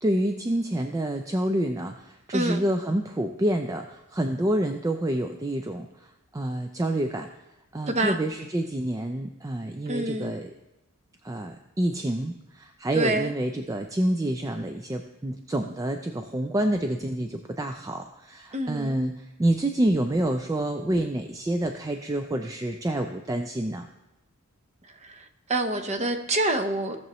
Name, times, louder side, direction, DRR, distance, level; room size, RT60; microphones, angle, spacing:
voice 1, 0.0-6.1 6.3-7.3 7.7-10.5 11.2-23.9, right 1 dB, 15° right, 6 dB, 0.4 m, -28 dB
voice 2, 9.9-10.3 12.9-13.3 18.5-19.0 25.5-27.0, right 1 dB, 30° right, 7 dB, 0.7 m, -26 dB
17.0 x 6.8 x 3.0 m, 0.96 s
head